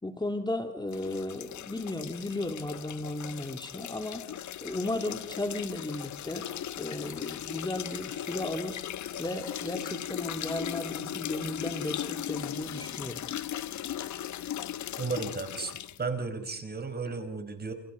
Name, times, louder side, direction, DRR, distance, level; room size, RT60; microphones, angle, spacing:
voice 1, 0.0-4.2 4.6-6.5 6.8-8.8 9.2-13.2, left 2 dB, 15° left, 5 dB, 3.2 m, -35 dB
sound 1, 0.9-16.0, left 11 dB, 70° left, 1.3 m, -38 dB
voice 2, 15.0-15.7 16.0-17.7, right 4 dB, 30° right, 9 dB, 5.4 m, -34 dB
29.5 x 28.5 x 5.4 m, 0.66 s
cardioid pair, 90°, 30 cm